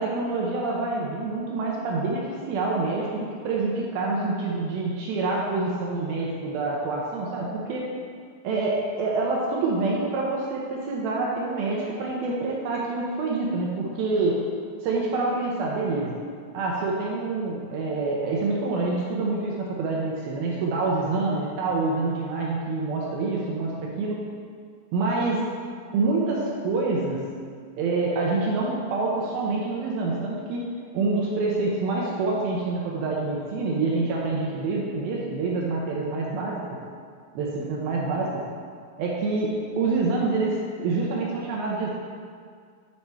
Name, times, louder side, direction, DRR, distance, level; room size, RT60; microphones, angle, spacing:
voice 1, 0.0-7.8 8.4-14.3 14.8-16.2 16.5-24.2 24.9-25.4 25.9-27.2 27.8-30.6 30.9-36.8 37.4-38.4 39.0-41.9, right 3 dB, 80° right, -3 dB, 2.2 m, -26 dB
9.2 x 4.3 x 4.7 m, 2.1 s
omnidirectional pair, 5.2 m